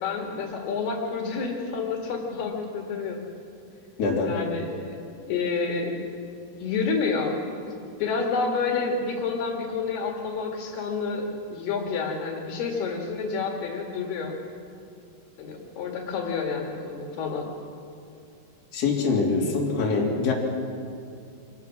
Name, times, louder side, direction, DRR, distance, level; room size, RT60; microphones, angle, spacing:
voice 1, 0.0-3.2 4.2-6.0 6.6-7.4 8.0-14.3 15.4-17.5, left 4 dB, 70° left, 0 dB, 3.7 m, -29 dB
voice 2, 4.0-4.4 18.7-20.3, left 4 dB, 40° left, -3 dB, 3.6 m, -24 dB
25.5 x 18.0 x 6.1 m, 2.4 s
omnidirectional pair, 4.8 m